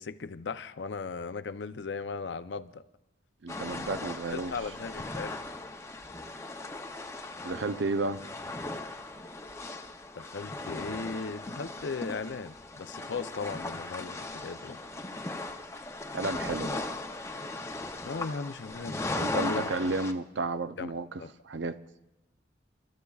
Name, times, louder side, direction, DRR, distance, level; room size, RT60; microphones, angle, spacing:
voice 1, 0.0-2.8 4.3-5.4 10.2-14.8 18.0-19.7 20.8-20.9 21.2-21.3, left 4 dB, 70° left, 0.5 m, -37 dB
voice 2, 3.4-4.5 7.4-8.2 16.1-16.8 19.1-21.8, right 3 dB, 80° right, 0.6 m, -32 dB
sound 1, 3.5-20.1, left 2 dB, 15° left, 0.6 m, -38 dB
28.5 x 13.0 x 2.4 m
head